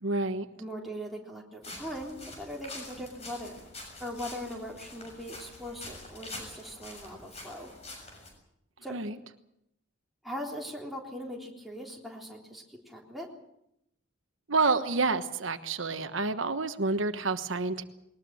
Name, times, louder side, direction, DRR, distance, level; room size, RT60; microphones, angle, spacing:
voice 1, 0.0-0.5 8.9-9.1 14.5-17.8, right 3 dB, 85° right, 9 dB, 1.3 m, -28 dB
voice 2, 0.6-3.7 4.0-7.7 8.8-9.0 10.2-13.3, equal, ahead, -2 dB, 3.6 m, -40 dB
sound 1, 1.6-8.3, left 2 dB, 30° left, 7.0 m, -45 dB
21.0 x 20.0 x 7.7 m, 0.80 s
head